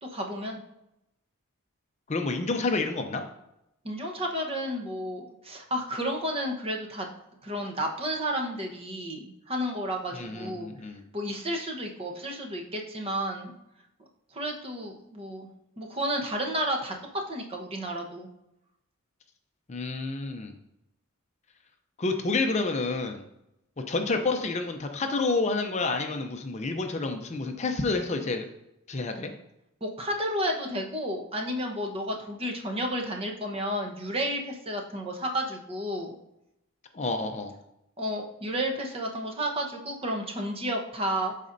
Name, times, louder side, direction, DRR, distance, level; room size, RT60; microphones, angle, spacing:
voice 1, 0.0-0.6 3.8-7.1 7.4-10.7 11.1-13.5 14.3-15.5 15.8-16.9 17.3-18.3 29.8-36.2 38.0-41.3, equal, 25° right, 1 dB, 1.0 m, -32 dB
voice 2, 2.1-3.2 10.1-11.0 19.7-20.5 22.0-23.2 23.9-28.4 28.9-29.3 36.9-37.5, left 3 dB, 30° left, 5 dB, 0.5 m, -29 dB
12.5 x 4.2 x 2.6 m, 0.85 s
head